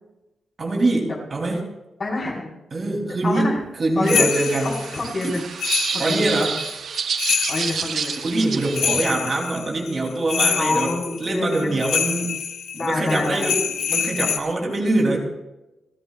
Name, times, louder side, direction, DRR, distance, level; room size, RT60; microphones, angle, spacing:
voice 1, 0.6-1.6 2.7-4.7 5.2-5.4 6.0-6.6 8.2-12.4 12.7-15.2, right 2 dB, 40° right, 0 dB, 3.1 m, -23 dB
voice 2, 2.0-2.5 3.2-3.6 4.0-4.3 4.6-5.4 5.9-6.3 7.5-8.1 10.5-11.8 12.7-13.5, left 2 dB, 40° left, -3 dB, 4.5 m, -26 dB
sound 1, 4.0-9.1, right 6 dB, 65° right, 0.7 m, -29 dB
sound 2, 4.1-14.4, left 7 dB, 85° left, 1.1 m, -26 dB
29.0 x 13.5 x 2.4 m, 0.99 s
cardioid pair, 110°, 0 cm